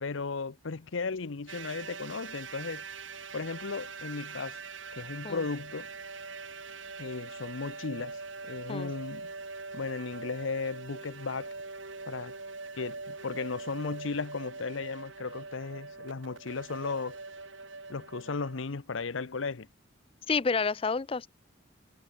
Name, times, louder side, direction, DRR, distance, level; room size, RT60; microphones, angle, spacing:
voice 1, 0.0-2.8 3.3-4.6 4.9-5.9 7.0-8.2 8.4-9.3 9.7-11.5 12.1-12.3 12.7-17.2 17.9-19.7, left 4 dB, 80° left, 0.8 m, -35 dB
sound 1, 1.5-18.6, right 4 dB, 80° right, 6.3 m, -43 dB
voice 2, 20.3-21.3, left 4 dB, 30° left, 0.5 m, -29 dB
head